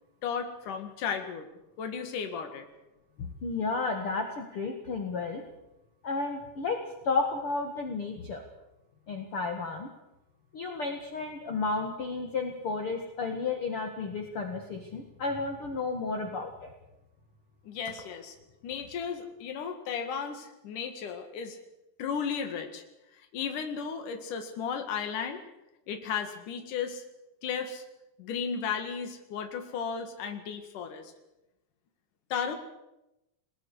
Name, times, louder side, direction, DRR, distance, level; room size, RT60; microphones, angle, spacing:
voice 1, 0.2-1.5 1.8-2.7 17.7-18.4 18.6-21.6 22.0-22.8 23.3-25.4 25.9-27.0 27.4-27.8 28.2-31.1 32.3-32.6, left 6 dB, 65° left, 6 dB, 3.5 m, -34 dB
voice 2, 3.2-5.4 6.0-6.8 7.0-8.4 9.1-9.9 10.5-16.7, left 4 dB, 45° left, 3 dB, 2.2 m, -32 dB
29.5 x 20.5 x 4.9 m, 0.93 s
omnidirectional pair, 4.2 m